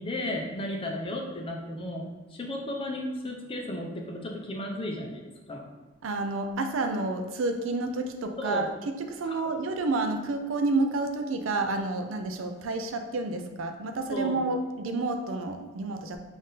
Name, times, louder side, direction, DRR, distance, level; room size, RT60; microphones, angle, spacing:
voice 1, 0.0-5.2 5.5-5.7 8.4-8.7 9.3-9.4 14.1-14.4, left 1 dB, 30° left, 1 dB, 0.5 m, -34 dB
voice 2, 6.0-16.2, right 3 dB, 75° right, 6 dB, 0.4 m, -30 dB
3.6 x 2.6 x 3.8 m, 1.3 s
head